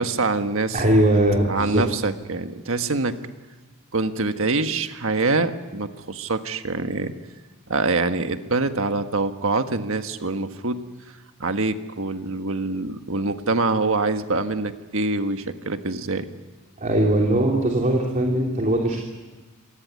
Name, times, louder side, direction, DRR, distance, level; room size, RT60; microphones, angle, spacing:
voice 1, 0.0-0.8 1.5-3.1 3.9-7.1 7.7-10.8 11.4-16.3, right 3 dB, 65° right, 8 dB, 1.6 m, -25 dB
voice 2, 0.7-1.8 16.8-19.0, right 1 dB, 35° right, -1 dB, 3.1 m, -20 dB
26.0 x 19.0 x 9.5 m, 1.2 s
head